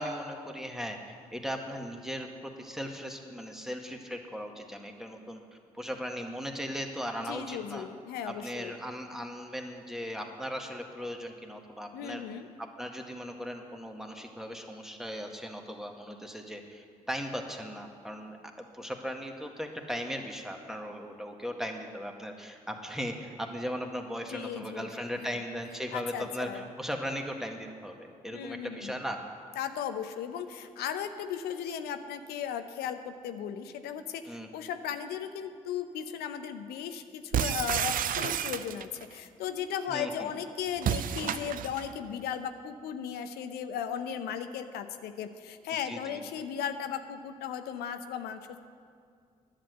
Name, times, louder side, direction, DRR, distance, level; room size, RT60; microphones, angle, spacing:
voice 1, 0.0-5.4 5.7-7.9 8.3-12.2 12.6-29.2 34.3-34.5 39.9-40.3 45.9-46.2, equal, ahead, 3 dB, 1.7 m, -38 dB
voice 2, 7.2-8.7 11.9-12.5 24.3-24.9 25.9-26.7 28.3-28.9 29.6-48.6, left 8 dB, 75° left, 9 dB, 0.7 m, -36 dB
sound 1, 37.3-39.0 40.8-41.9, right 9 dB, 55° right, 0.5 m, -30 dB
11.0 x 7.7 x 7.9 m, 2.2 s
hypercardioid pair, 40°, 17 cm